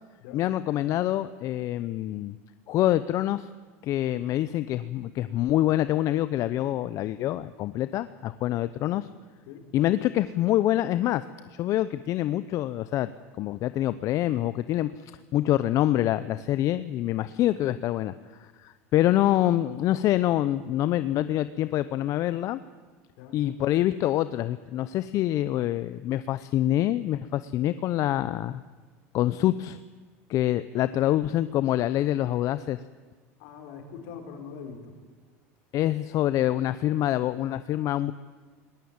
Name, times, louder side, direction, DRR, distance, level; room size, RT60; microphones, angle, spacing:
voice 1, 0.3-2.4 2.7-3.5 3.8-9.1 9.7-11.2 11.6-13.1 13.4-14.9 15.3-18.1 18.4-22.6 23.3-28.6 29.1-29.8 30.3-32.8 35.7-38.1, left 13 dB, 50° left, 14 dB, 0.7 m, -26 dB
voice 2, 33.4-34.9, left 6 dB, 70° left, 4 dB, 5.2 m, -43 dB
21.5 x 19.0 x 8.9 m, 1.4 s
supercardioid pair, 115°, 7 cm